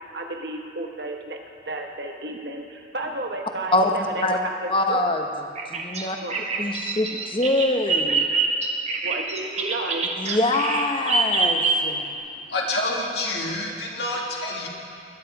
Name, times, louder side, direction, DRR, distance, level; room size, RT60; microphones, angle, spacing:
voice 1, 0.1-1.4 1.6-5.0 6.2-7.0 9.0-10.2, right 2 dB, 65° right, 2 dB, 1.4 m, -33 dB
voice 2, 4.7-5.2 5.7-6.2 6.6-8.2 10.2-12.0, left 2 dB, 30° left, 4 dB, 1.0 m, -24 dB
Bird vocalization bird call bird song, 5.6-12.1, right 4 dB, 40° right, 1.3 m, -25 dB
voice 3, 12.0-14.7, left 2 dB, 65° left, -2 dB, 2.3 m, -28 dB
20.5 x 11.5 x 4.8 m, 2.5 s
head